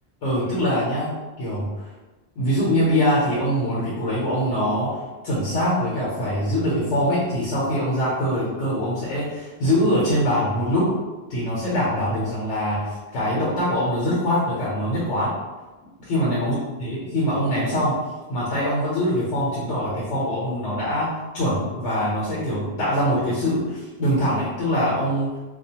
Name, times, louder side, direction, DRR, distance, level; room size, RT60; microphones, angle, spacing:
voice 1, 0.2-1.7 2.4-5.0 5.2-10.9 11.3-15.3 16.0-18.0 18.3-25.3, equal, 85° left, -7 dB, 1.0 m, -23 dB
2.4 x 2.2 x 2.8 m, 1.2 s
omnidirectional pair, 1.1 m